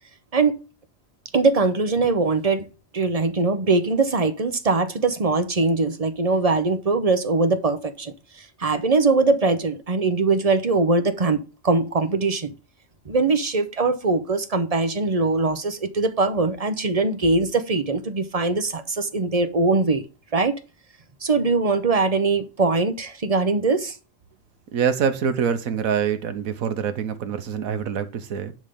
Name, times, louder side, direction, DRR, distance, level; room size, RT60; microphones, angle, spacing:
voice 1, 1.3-2.7 2.9-12.5 13.1-20.0 20.3-20.5 21.2-24.0, right 3 dB, 30° right, 0.9 m, -22 dB
voice 2, 24.7-28.5, right 7 dB, 85° right, 1.4 m, -25 dB
10.5 x 3.8 x 6.8 m
omnidirectional pair, 1.4 m